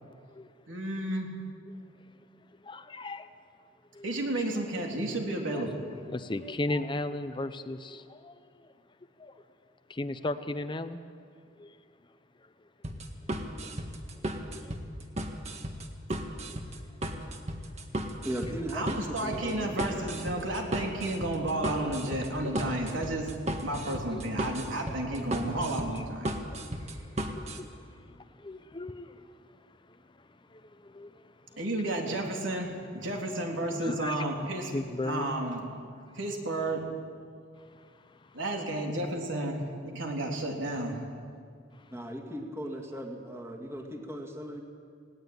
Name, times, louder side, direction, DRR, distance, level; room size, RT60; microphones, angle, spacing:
voice 1, 0.7-1.3 4.0-5.9 18.7-23.3 23.6-26.4 31.6-34.7 35.0-35.7 36.2-36.9 38.3-41.0 42.7-42.8, right 1 dB, 80° right, 1 dB, 3.4 m, -32 dB
voice 2, 2.6-3.3 3.9-4.1 5.5-8.3 9.2-9.3 9.9-11.0 11.6-11.7 14.5-14.7 18.1-18.2 20.3-20.4 21.8-21.9 22.4-22.6 22.8-22.9 23.9-24.2 25.1-25.2 26.5-27.7 28.0-29.2 30.5-31.1 33.8-34.2 34.7-35.3, left 2 dB, 25° left, 10 dB, 0.7 m, -37 dB
sound 1, 12.8-27.6, right 1 dB, 35° right, 1.6 m, -35 dB
voice 3, 18.2-20.0 41.9-44.6, equal, 15° right, 1 dB, 2.1 m, -38 dB
19.0 x 18.0 x 9.5 m, 2.2 s
head